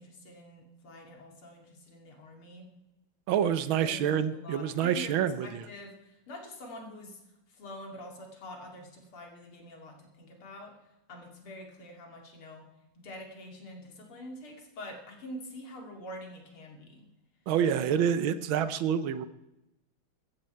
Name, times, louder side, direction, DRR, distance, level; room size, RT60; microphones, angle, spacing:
voice 1, 0.0-2.7 3.8-5.1 5.4-7.2 7.5-12.7 12.9-17.1, equal, 85° left, 1 dB, 3.3 m, -46 dB
voice 2, 3.3-5.6 17.5-19.3, right 8 dB, 75° right, 13 dB, 1.5 m, -27 dB
15.5 x 13.0 x 4.5 m, 0.92 s
omnidirectional pair, 2.3 m